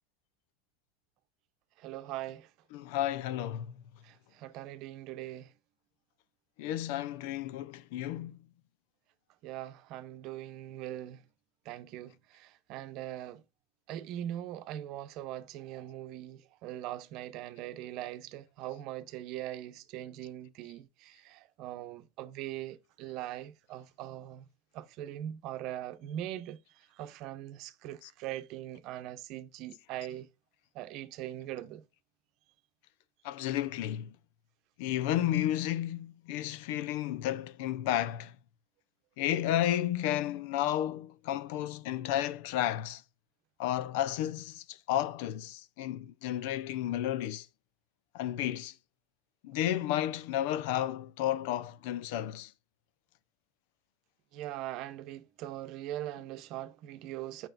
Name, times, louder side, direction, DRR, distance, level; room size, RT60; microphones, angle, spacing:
voice 1, 1.8-2.5 4.0-5.5 9.4-11.2 11.6-13.4 13.9-24.5 24.7-30.3 30.7-31.8 54.3-57.5, right 13 dB, 55° right, 0.8 m, -41 dB
voice 2, 2.7-3.8 6.6-8.4 28.0-28.1 33.2-34.1 34.8-38.3 39.2-43.0 43.6-47.5 48.1-48.7 49.4-52.5, left 12 dB, 70° left, 0.7 m, -32 dB
8.9 x 6.2 x 2.6 m
supercardioid pair, 115°, 0 cm